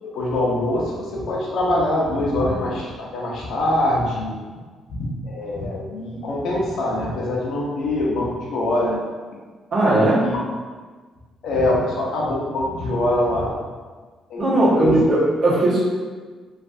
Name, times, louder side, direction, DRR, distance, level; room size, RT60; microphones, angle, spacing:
voice 1, 0.0-4.4 4.9-9.0 9.9-10.4 11.4-13.5 14.3-15.0, left 1 dB, 75° left, -4 dB, 0.7 m, -24 dB
voice 2, 9.7-10.2 14.4-15.8, right 1 dB, 55° right, -7 dB, 1.2 m, -17 dB
3.3 x 2.5 x 2.5 m, 1.4 s
cardioid pair, 90°, 0 cm